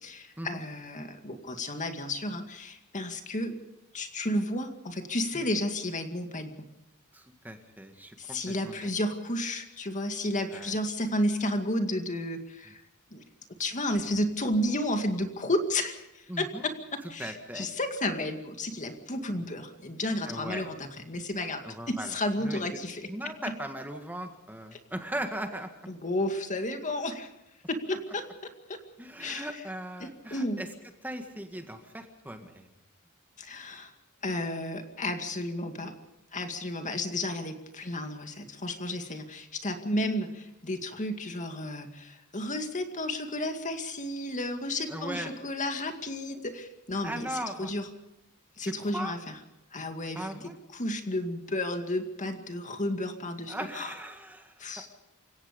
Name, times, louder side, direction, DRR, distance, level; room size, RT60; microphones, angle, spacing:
voice 1, 0.0-3.5 3.9-6.6 8.2-12.8 13.1-13.2 13.6-23.1 24.7-24.8 25.9-27.3 27.7-28.2 28.7-28.8 29.2-29.5 30.0-30.6 33.4-33.9 34.2-35.9 36.3-47.3 47.6-47.8 48.6-49.4 49.7-53.9 54.6-54.9, left 1 dB, 35° left, 6 dB, 2.2 m, -32 dB
voice 2, 7.1-8.9 10.5-10.8 16.3-16.7 17.2-17.7 20.2-20.7 21.6-22.6 23.1-25.7 29.0-30.7 31.0-32.7 44.9-45.3 47.0-47.7 48.6-49.1 50.1-50.6 53.5-54.6, right 1 dB, 10° right, 5 dB, 1.7 m, -38 dB
28.5 x 17.0 x 5.3 m, 0.89 s
head